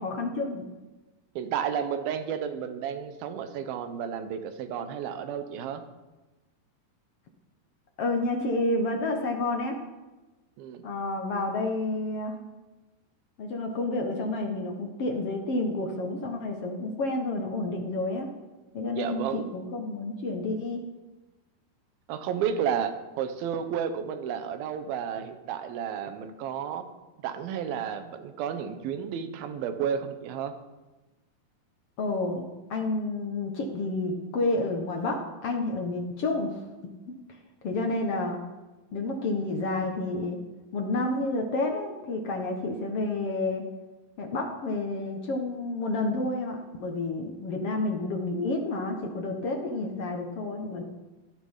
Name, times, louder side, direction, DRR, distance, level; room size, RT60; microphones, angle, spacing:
voice 1, 0.0-0.6 8.0-9.8 10.8-12.4 13.4-18.3 18.7-20.8 32.0-36.7 37.1-38.4 38.9-40.4 40.7-43.6 44.2-50.8, left 2 dB, 60° left, 2 dB, 1.6 m, -30 dB
voice 2, 1.4-5.8 10.6-10.8 18.9-19.4 22.1-26.9 27.2-30.5, right 8 dB, 70° right, 8 dB, 2.9 m, -32 dB
16.0 x 12.0 x 5.6 m, 1.1 s
omnidirectional pair, 4.6 m